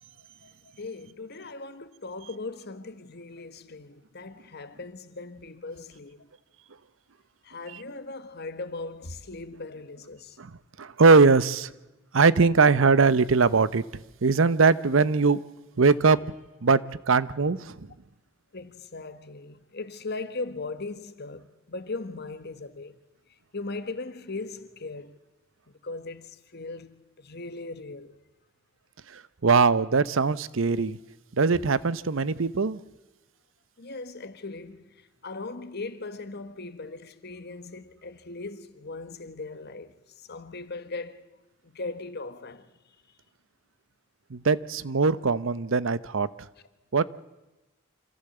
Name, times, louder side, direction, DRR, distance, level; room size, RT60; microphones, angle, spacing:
voice 1, 0.4-6.3 7.4-10.4 18.5-22.9 23.5-25.2 25.8-28.2 33.8-34.9 35.2-39.9 40.3-41.3 41.6-42.6, left 3 dB, 55° left, 1.4 m, -38 dB
voice 2, 10.8-11.7 12.1-13.8 14.2-15.4 15.8-16.2 16.6-16.8 17.1-17.9 29.1-31.0 31.3-32.8 44.3-46.3 46.9-47.0, right 4 dB, 65° right, 0.7 m, -21 dB
26.0 x 15.0 x 7.9 m
head